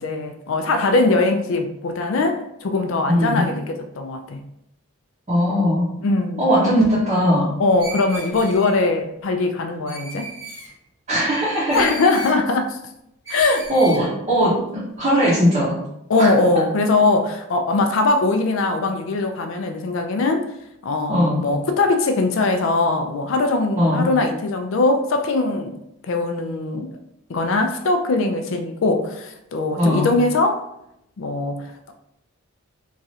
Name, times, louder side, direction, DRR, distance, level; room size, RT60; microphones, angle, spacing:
voice 1, 0.0-4.4 6.0-6.4 7.6-10.3 11.7-12.8 13.3-13.6 16.1-20.4 20.8-25.7 26.0-27.0 27.3-30.6 31.2-31.9, left 3 dB, 60° left, 6 dB, 0.4 m, -21 dB
voice 2, 3.1-3.4 5.3-5.8 6.4-7.5 11.1-11.8 13.7-15.8 16.2-16.3 21.1-21.4 23.8-24.1 29.8-30.1, equal, 30° right, -9 dB, 0.7 m, -19 dB
Screech, 7.8-8.8 9.9-10.7 11.7-12.4 13.2-14.0, right 1 dB, 15° right, 1.0 m, -35 dB
3.1 x 2.4 x 2.7 m, 0.81 s
head